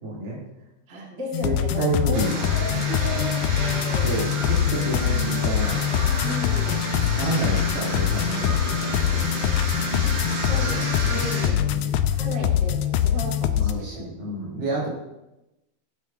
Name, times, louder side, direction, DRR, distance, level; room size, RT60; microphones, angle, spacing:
voice 1, 0.0-0.4 1.4-2.3 4.0-5.8 7.2-9.2 10.1-10.5 11.5-11.9 13.5-14.9, right 2 dB, 65° right, -6 dB, 5.0 m, -29 dB
voice 2, 0.9-2.2 2.5-4.2 6.2-6.9 10.2-11.7 12.1-14.0, equal, 25° right, -3 dB, 1.9 m, -35 dB
sound 1, 1.3-13.7, left 10 dB, 85° left, 1.7 m, -24 dB
sound 2, 2.1-11.5, right 2 dB, 85° right, 5.4 m, -31 dB
16.5 x 9.3 x 2.9 m, 0.95 s
omnidirectional pair, 3.9 m